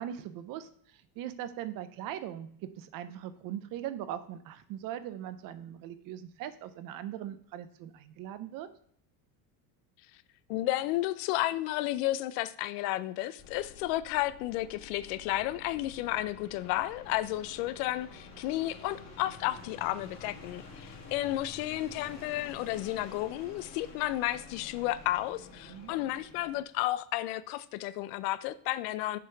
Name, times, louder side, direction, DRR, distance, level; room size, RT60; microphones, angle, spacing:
voice 1, 0.0-8.7 25.7-25.9, right 11 dB, 45° right, 13 dB, 0.6 m, -40 dB
voice 2, 10.5-29.2, left 15 dB, 80° left, 16 dB, 0.6 m, -32 dB
sound 1, 13.4-26.6, left 3 dB, 35° left, 1.8 m, -49 dB
6.9 x 5.1 x 5.6 m, 0.62 s
cardioid pair, 155°, 47 cm